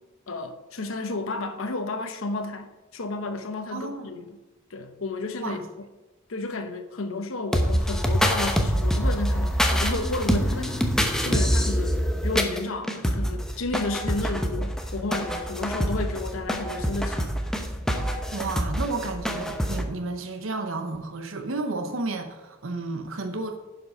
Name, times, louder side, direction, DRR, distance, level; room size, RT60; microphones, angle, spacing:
voice 1, 0.3-4.2 4.7-5.6 6.3-10.9 11.2-17.4, left 3 dB, 75° left, 0.9 m, -32 dB
voice 2, 3.7-4.1 5.4-5.7 18.3-23.6, right 3 dB, 70° right, 0.9 m, -32 dB
sound 1, 7.5-19.8, equal, 5° left, 0.8 m, -25 dB
10.5 x 5.3 x 5.6 m
head